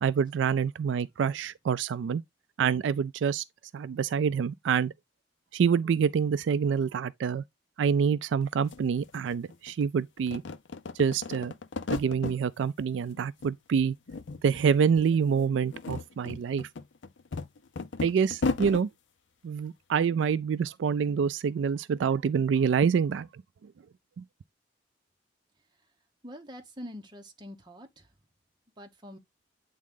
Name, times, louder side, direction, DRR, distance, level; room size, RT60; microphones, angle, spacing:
voice 1, 0.0-2.2 2.6-3.4 3.7-4.9 5.5-7.4 7.8-10.4 11.0-11.5 11.9-14.0 14.4-16.7 18.0-18.9 19.4-23.3 24.2-24.3, right 6 dB, 80° right, 0.3 m, -26 dB
sound 1, 8.4-8.5 8.7-9.8 10.2-12.4 12.8-13.5 13.8-14.7 14.9-15.1 15.6-18.8, left 4 dB, 80° left, 0.6 m, -35 dB
voice 2, 26.2-28.1 28.8-29.2, equal, 25° right, 1.1 m, -44 dB
8.4 x 3.7 x 3.6 m
head